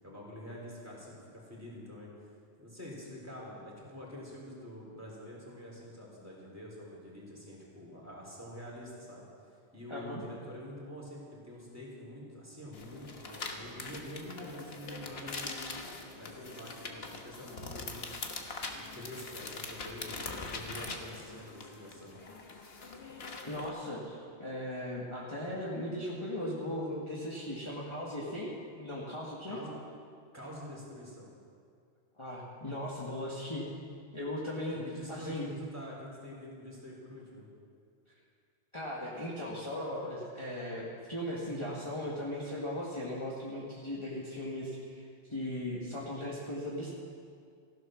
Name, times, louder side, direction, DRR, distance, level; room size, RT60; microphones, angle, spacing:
voice 1, 0.0-2.1 2.6-9.2 9.7-15.7 16.2-18.1 18.9-22.2 29.5-29.7 30.3-31.3 34.7-37.5, equal, 15° right, -5 dB, 3.7 m, -46 dB
voice 2, 9.9-10.2 23.5-28.5 28.7-29.6 32.2-33.7 34.1-34.8 35.1-35.5 38.7-46.9, left 1 dB, 25° left, -6 dB, 1.7 m, -38 dB
sound 1, 12.7-23.7, left 3 dB, 60° left, 1.4 m, -43 dB
15.0 x 11.0 x 6.3 m, 2.2 s
omnidirectional pair, 1.2 m